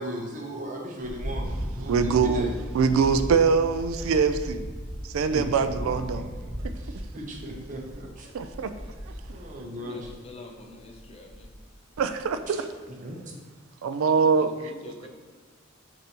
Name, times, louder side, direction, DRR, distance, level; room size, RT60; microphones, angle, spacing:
voice 1, 0.0-1.5 1.8-2.5 5.3-6.2 6.8-8.3 9.3-10.1 12.5-12.6 13.0-13.2, right 1 dB, 40° right, -1 dB, 0.7 m, -37 dB
sound 1, 1.1-9.6 10.0-10.2 10.8-11.7 12.0-12.4, equal, ahead, 0.9 m, -36 dB
voice 2, 1.9-4.6 5.0-6.3 6.6-6.7 8.3-8.7 12.0-12.6 13.8-14.5, right 5 dB, 90° right, 10 dB, 0.3 m, -23 dB
voice 3, 9.8-11.5 14.3-15.1, left 2 dB, 30° left, 3 dB, 0.5 m, -46 dB
6.7 x 2.7 x 2.9 m, 1.5 s
head